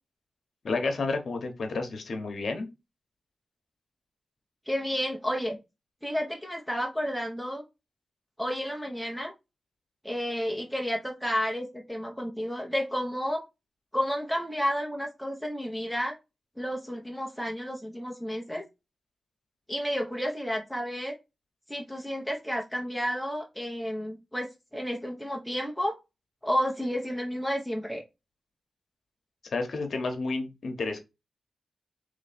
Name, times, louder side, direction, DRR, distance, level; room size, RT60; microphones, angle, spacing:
voice 1, 0.6-2.7 29.5-31.0, left 3 dB, 70° left, 6 dB, 1.0 m, -30 dB
voice 2, 4.7-5.6 6.0-7.6 8.4-9.3 10.0-13.4 13.9-16.2 16.6-18.6 19.7-21.1 21.7-26.0 26.4-28.0, equal, ahead, 0 dB, 0.8 m, -31 dB
3.2 x 3.1 x 4.1 m, 0.25 s
cardioid pair, 75°, 0 cm